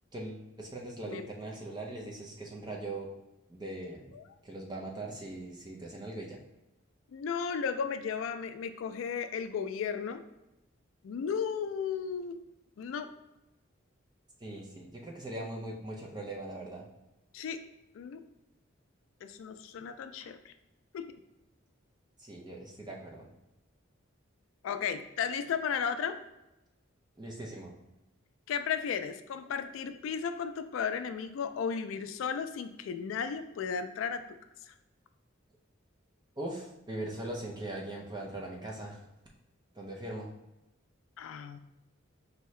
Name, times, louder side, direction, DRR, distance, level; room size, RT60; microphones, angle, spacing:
voice 1, 0.1-3.1 3.5-4.1 4.4-6.4 14.4-16.9 22.2-23.3 27.2-27.7 36.4-39.0 39.7-40.3, right 1 dB, 20° right, -1 dB, 0.6 m, -40 dB
voice 2, 7.1-10.2 11.0-12.4 12.8-13.1 17.3-17.6 17.9-18.2 19.2-20.5 20.9-21.1 24.6-26.2 28.5-34.2 34.7-34.8 41.2-41.6, left 6 dB, 80° left, 9 dB, 0.3 m, -34 dB
4.6 x 2.7 x 3.1 m, 0.95 s
head